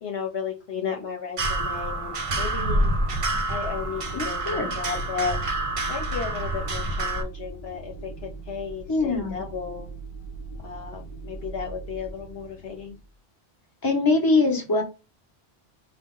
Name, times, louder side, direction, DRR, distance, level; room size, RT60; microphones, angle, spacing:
voice 1, 0.0-2.9 3.5-5.4 5.9-9.9 10.6-13.0, left 6 dB, 70° left, 1.1 m, -34 dB
sound 1, 1.4-7.2, right 2 dB, 40° right, 0.5 m, -27 dB
sound 2, 3.5-13.1, right 3 dB, 35° left, 0.5 m, -41 dB
voice 2, 4.1-4.7 8.9-9.4 13.8-14.8, left 3 dB, 20° left, 1.0 m, -23 dB
5.0 x 2.3 x 3.8 m
omnidirectional pair, 1.1 m